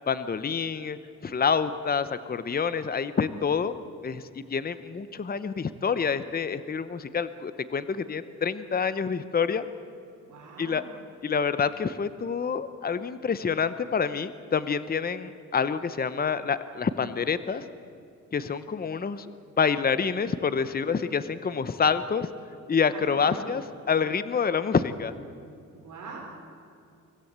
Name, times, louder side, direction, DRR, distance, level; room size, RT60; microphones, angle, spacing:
voice 1, 0.1-1.0 1.2-3.7 4.0-9.6 10.6-10.8 11.2-17.6 18.3-19.3 19.6-22.3 22.7-25.1, left 6 dB, 30° left, 13 dB, 0.8 m, -27 dB
voice 2, 10.3-10.9 22.9-23.4 25.7-26.2, right 5 dB, 70° right, -2 dB, 4.7 m, -43 dB
24.5 x 16.5 x 8.1 m, 2.5 s
cardioid pair, 105°, 31 cm